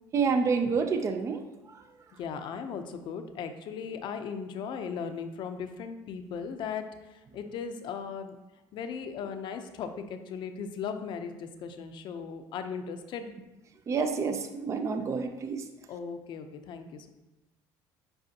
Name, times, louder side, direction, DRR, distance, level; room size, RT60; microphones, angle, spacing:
voice 1, 0.1-1.8 13.9-15.7, right 5 dB, 30° right, 7 dB, 0.5 m, -29 dB
voice 2, 2.2-6.9 7.1-8.3 8.7-13.3 15.9-17.1, left 6 dB, 55° left, 8 dB, 0.6 m, -37 dB
7.8 x 4.9 x 2.8 m, 1.0 s
cardioid pair, 115°, 9 cm